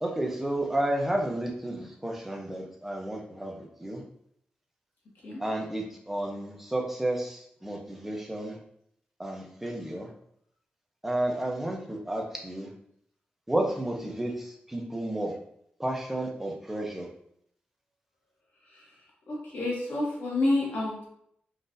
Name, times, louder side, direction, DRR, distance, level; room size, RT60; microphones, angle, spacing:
voice 1, 0.0-4.0 5.4-8.6 9.2-10.1 11.0-12.7 13.5-15.4 15.8-17.1, right 1 dB, 5° right, 0 dB, 0.6 m, -31 dB
voice 2, 19.3-21.0, left 2 dB, 75° left, -5 dB, 1.3 m, -29 dB
3.8 x 2.5 x 2.5 m, 0.71 s
wide cardioid pair, 125°, 3 cm